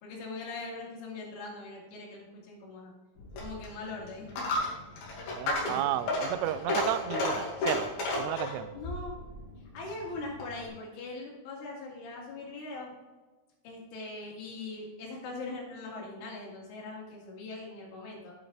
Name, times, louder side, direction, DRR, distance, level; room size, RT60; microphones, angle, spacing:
voice 1, 0.0-2.9 3.4-4.5 8.7-9.2 9.7-13.0 13.6-18.3, left 3 dB, 75° left, -3 dB, 4.7 m, -41 dB
Coin (dropping), 3.2-10.7, left 2 dB, 60° left, 3.6 m, -33 dB
voice 2, 5.3-7.9 8.2-8.7, right 13 dB, 90° right, 14 dB, 3.1 m, -32 dB
10.0 x 8.7 x 3.3 m, 1.2 s
omnidirectional pair, 5.6 m